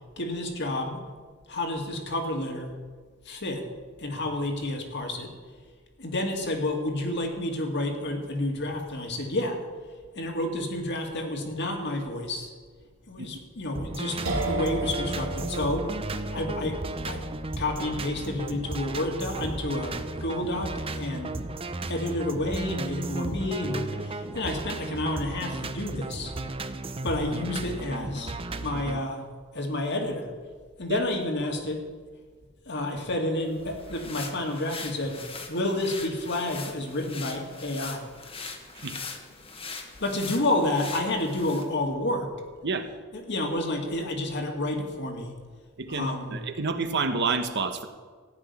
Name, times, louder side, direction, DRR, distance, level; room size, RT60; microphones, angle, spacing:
voice 1, 0.2-1.0 1.5-2.7 3.3-3.7 4.0-5.3 6.0-9.6 10.1-12.5 13.1-15.9 16.3-17.3 17.6-21.4 21.9-26.3 27.0-28.3 28.6-29.2 29.5-30.3 30.8-31.8 32.7-38.1 39.8-42.3 43.1-45.3 45.9-46.4, left 1 dB, 55° left, 3 dB, 2.1 m, -30 dB
sound 1, 13.7-29.0, right 2 dB, 25° right, 0.6 m, -34 dB
sound 2, 14.2-21.8, right 2 dB, 90° right, 2.8 m, -36 dB
sound 3, 33.5-41.7, left 4 dB, 25° left, 1.2 m, -41 dB
voice 2, 45.8-47.9, right 4 dB, 55° right, 8 dB, 1.1 m, -28 dB
15.0 x 6.2 x 9.7 m, 1.5 s
head